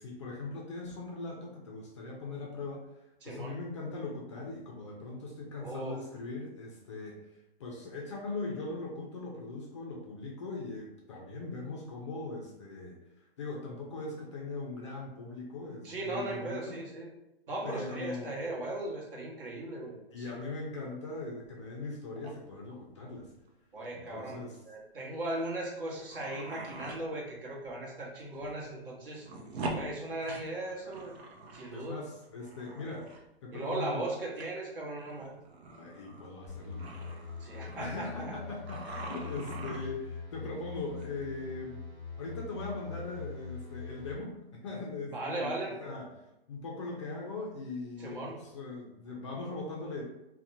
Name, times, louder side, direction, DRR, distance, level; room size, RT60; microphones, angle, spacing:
voice 1, 0.0-7.3 7.6-13.0 13.4-16.8 17.6-18.5 20.1-23.3 23.9-24.6 31.7-33.1 33.4-34.1 35.7-37.1 37.5-41.8 42.2-45.5 45.8-50.0, left 3 dB, 30° left, -1 dB, 0.4 m, -40 dB
voice 2, 3.2-3.5 5.6-6.0 15.8-17.1 17.5-20.4 23.7-24.4 24.7-29.3 29.7-31.1 31.5-32.0 33.5-35.4 37.4-38.3 45.1-45.8 48.0-48.4, right 2 dB, 60° right, -3 dB, 1.0 m, -37 dB
sound 1, 21.4-21.8 22.2-22.3 23.2-23.5 23.8-23.9 24.1-24.3 25.2-25.3 25.8-27.0 27.6-27.7 28.2-28.6 28.9-31.7 32.0-33.3 34.4-34.5 35.0-38.4 38.7-40.1 41.0-41.2, right 2 dB, 80° right, 0.6 m, -43 dB
sound 2, 36.5-44.1, left 5 dB, 15° right, 1.0 m, -43 dB
2.7 x 2.1 x 2.6 m, 0.92 s
hypercardioid pair, 135°, 31 cm